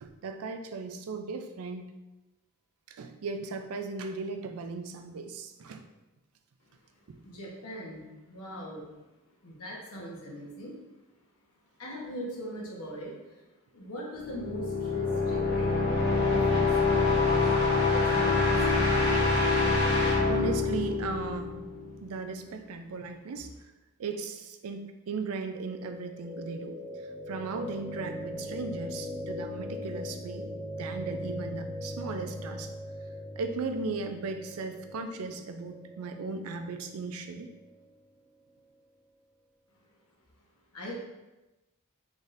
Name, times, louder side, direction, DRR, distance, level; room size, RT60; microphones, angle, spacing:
voice 1, 0.0-1.9 2.9-5.8 15.1-15.2 20.3-21.5 22.0-23.5 24.0-26.8 27.3-30.5 30.8-32.7 33.4-37.5, right 4 dB, 75° right, 7 dB, 0.4 m, -37 dB
voice 2, 7.2-8.0 8.3-8.8 9.4-10.7 11.8-13.1 13.7-14.6 14.9-15.9 16.3-17.4 17.9-18.5 40.7-41.0, equal, 80° left, -3 dB, 1.1 m, -40 dB
sound 1, 14.2-22.0, left 3 dB, 45° left, 0.9 m, -25 dB
sound 2, 25.6-37.7, left 1 dB, 15° right, 0.5 m, -40 dB
4.0 x 3.6 x 2.5 m, 1.0 s
head